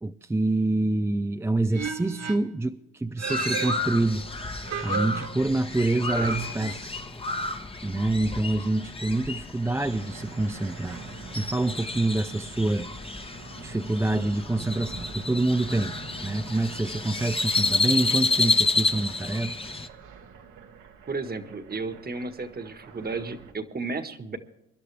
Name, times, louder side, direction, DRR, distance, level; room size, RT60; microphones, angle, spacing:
voice 1, 0.0-4.3 4.8-6.9 7.8-11.0 11.3-12.9 13.6-15.9 16.2-19.6, right 2 dB, 10° right, 7 dB, 0.5 m, -26 dB
sound 1, 1.7-2.6 3.2-4.3 4.6-5.6 6.1-7.1, right 5 dB, 60° right, 1.6 m, -34 dB
Crow, 3.3-19.9, left 3 dB, 20° left, 1.2 m, -30 dB
sound 2, 9.8-23.5, right 6 dB, 80° right, 1.9 m, -45 dB
voice 2, 21.1-24.4, right 3 dB, 30° right, 9 dB, 1.6 m, -33 dB
25.0 x 11.5 x 3.4 m, 0.86 s
cardioid pair, 90°, 30 cm